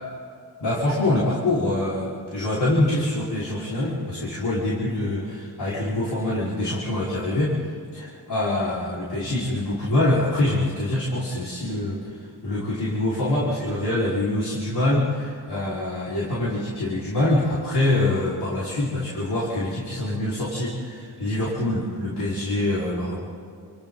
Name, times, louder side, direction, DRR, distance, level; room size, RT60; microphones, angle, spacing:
voice 1, 0.6-23.2, left 1 dB, 80° left, -9 dB, 5.3 m, -25 dB
30.0 x 28.5 x 4.1 m, 2.3 s
wide cardioid pair, 150°, 39 cm